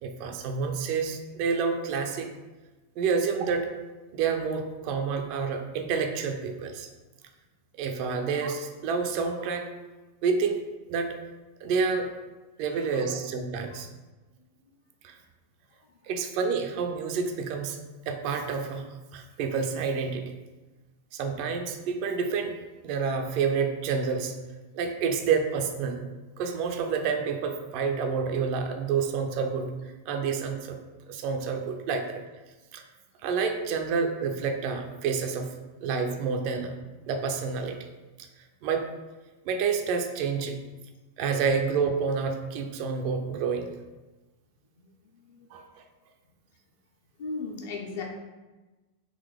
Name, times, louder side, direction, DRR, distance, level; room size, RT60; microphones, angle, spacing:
voice 1, 0.0-2.3 3.0-3.7 4.1-6.9 7.8-9.7 10.2-10.6 10.9-11.1 11.6-12.1 12.6-13.9 15.0-15.2 16.0-17.8 18.1-20.3 21.1-22.5 22.8-24.4 24.7-26.0 26.4-29.8 30.1-30.8 31.1-32.2 32.7-32.8 33.2-35.5 35.8-36.7 37.1-37.8 38.6-38.9 39.4-40.6 41.2-43.7 45.5-45.7, right 5 dB, 45° right, 5 dB, 0.4 m, -28 dB
voice 2, 12.6-13.1 13.7-13.8 14.6-14.7 45.0-45.5 47.2-48.0, left 4 dB, 55° left, 1 dB, 0.7 m, -38 dB
3.8 x 2.8 x 3.3 m, 1.2 s
figure-of-eight pair, 90°, 0 cm